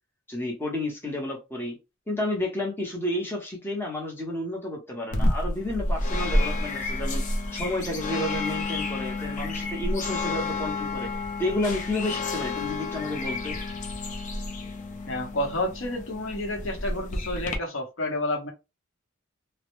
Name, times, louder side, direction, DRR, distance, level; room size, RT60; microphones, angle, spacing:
voice 1, 0.3-1.8 2.1-7.2 7.5-11.1 11.4-13.6, left 1 dB, 10° left, 0.7 m, -31 dB
sound 1, 5.1-17.6, left 2 dB, 40° left, 0.4 m, -30 dB
voice 2, 15.1-18.5, left 1 dB, 70° left, 0.8 m, -30 dB
2.1 x 2.1 x 2.9 m
head